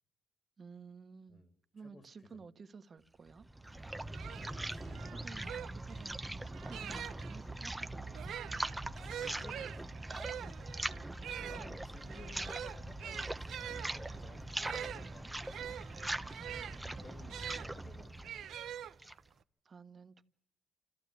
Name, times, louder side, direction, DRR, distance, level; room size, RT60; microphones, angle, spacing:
voice 1, 0.6-1.4 1.7-3.5 5.0-8.6 11.4-11.8 12.1-12.5 15.0-15.3 16.8-17.2 19.6-20.2, right 5 dB, 40° right, 9 dB, 1.4 m, -54 dB
sound 1, 3.3-19.3, right 2 dB, 10° right, 0.9 m, -42 dB
sound 2, 3.7-3.8 4.1-7.4 8.1-17.7 18.2-19.3, right 10 dB, 75° right, 0.9 m, -45 dB
voice 2, 4.4-5.3 9.0-10.5 11.1-15.3 17.0-18.5, left 2 dB, 40° left, 8 dB, 2.6 m, -57 dB
27.5 x 15.0 x 8.4 m, 0.72 s
cardioid pair, 90°, 0 cm